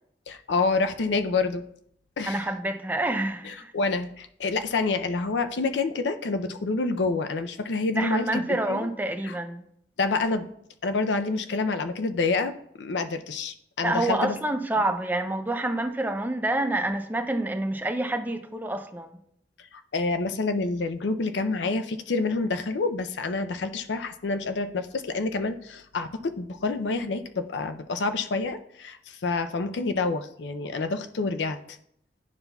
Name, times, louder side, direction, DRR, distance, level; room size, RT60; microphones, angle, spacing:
voice 1, 0.3-1.6 2.2-2.4 3.4-8.4 8.7-8.9 9.2-9.4 10.0-10.5 10.8-14.3 19.9-31.6, left 3 dB, 75° left, 0.5 m, -28 dB
voice 2, 2.3-3.7 8.0-9.6 13.8-19.2, right 1 dB, 10° right, 0.5 m, -28 dB
9.7 x 5.5 x 2.3 m
head